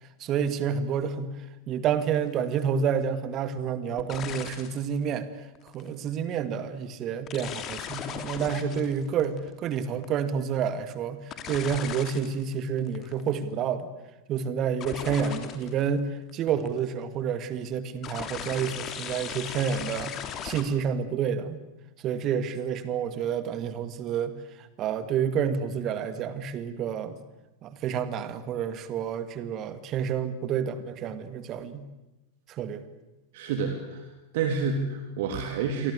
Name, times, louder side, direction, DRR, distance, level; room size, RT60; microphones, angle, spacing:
voice 1, 0.2-1.3 1.7-5.3 5.7-13.9 14.3-20.2 20.4-21.6 22.0-24.4 24.8-27.2 27.6-31.8 32.5-32.8, right 7 dB, 35° right, 11 dB, 2.3 m, -29 dB
sound 1, 2.0-2.2 4.0-4.9 5.5-5.9 7.3-10.2 11.3-12.4 12.8-13.4 14.8-15.9 16.3-16.8 18.0-20.6, left 9 dB, 30° left, 3.2 m, -37 dB
voice 2, 33.3-34.1 34.3-35.9, right 5 dB, 50° right, 5 dB, 3.1 m, -29 dB
29.0 x 24.0 x 8.3 m, 1.0 s
figure-of-eight pair, 90°, 0 cm